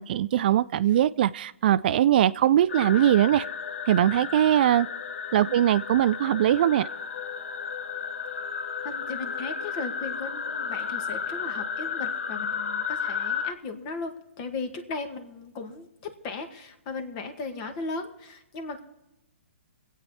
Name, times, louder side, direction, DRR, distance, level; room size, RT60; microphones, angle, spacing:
voice 1, 0.0-3.5 3.9-4.9 5.3-6.9, right 11 dB, 50° right, 16 dB, 0.4 m, -21 dB
sound 1, 2.7-13.5, left 6 dB, 70° left, 0.8 m, -33 dB
voice 2, 8.8-18.8, left 3 dB, 35° left, 7 dB, 1.8 m, -37 dB
23.5 x 8.6 x 4.2 m, 0.91 s
hypercardioid pair, 145°, 7 cm